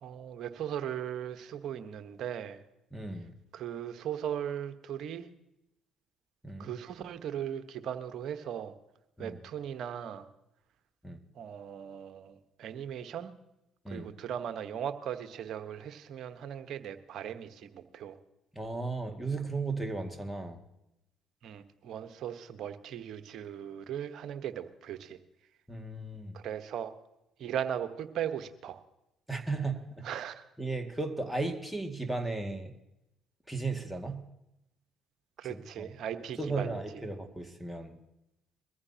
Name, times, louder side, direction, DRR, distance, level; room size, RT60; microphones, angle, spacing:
voice 1, 0.0-2.6 3.5-5.3 6.6-8.7 9.2-10.3 11.3-13.3 13.9-18.2 21.4-25.2 26.3-26.9 27.4-28.8 30.0-30.4 35.4-36.8, right 9 dB, 60° right, 8 dB, 1.1 m, -38 dB
voice 2, 2.9-3.3 6.4-6.7 9.2-9.4 11.0-11.2 13.8-14.1 18.5-20.6 25.7-26.4 29.3-30.1 30.6-32.7 33.5-34.2 35.8-35.9 36.4-38.0, right 3 dB, ahead, 6 dB, 2.2 m, -35 dB
22.5 x 15.0 x 2.9 m, 0.88 s
hypercardioid pair, 55°, 0 cm